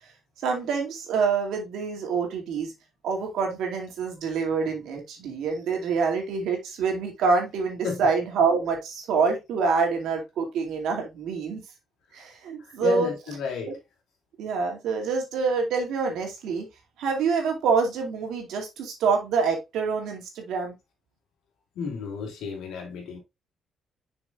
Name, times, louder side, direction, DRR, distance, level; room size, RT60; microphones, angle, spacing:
voice 1, 0.4-2.7 3.0-11.6 12.1-13.1 13.7-13.8 14.4-16.7 17.0-20.7, right 5 dB, 85° right, 2.4 m, -26 dB
voice 2, 12.6-13.7 21.7-23.2, left 5 dB, 85° left, 2.9 m, -32 dB
7.1 x 6.1 x 2.4 m
cardioid pair, 90°, 0 cm